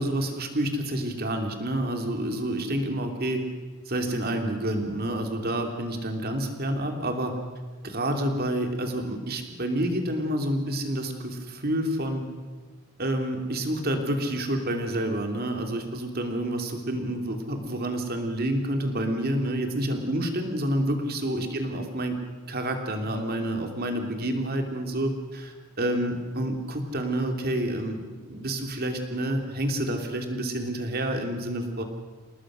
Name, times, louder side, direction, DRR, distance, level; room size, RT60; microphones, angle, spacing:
voice 1, 0.0-3.4 3.9-7.4 7.8-12.3 13.0-22.2 22.5-28.0 28.3-31.8, right 1 dB, 45° right, 4 dB, 2.9 m, -28 dB
28.5 x 19.0 x 6.4 m, 1.4 s
head